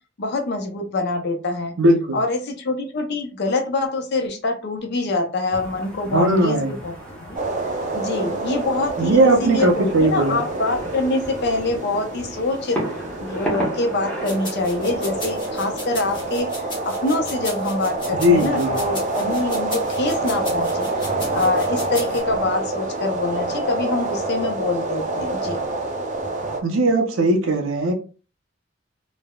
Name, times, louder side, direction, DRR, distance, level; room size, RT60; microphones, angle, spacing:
voice 1, 0.2-1.7 2.1-7.4 7.9-12.8 13.2-16.5 16.8-25.6, left 2 dB, 60° left, 0.6 m, -25 dB
voice 2, 1.8-2.2 6.1-6.7 9.0-10.4 18.2-18.8 26.6-27.9, right 1 dB, 85° right, 0.6 m, -18 dB
sound 1, 5.5-16.4, right 1 dB, 5° left, 0.8 m, -35 dB
sound 2, 7.3-26.6, right 2 dB, 40° right, 0.5 m, -27 dB
sound 3, 14.2-22.2, left 2 dB, 25° left, 1.2 m, -36 dB
3.3 x 2.0 x 2.2 m
head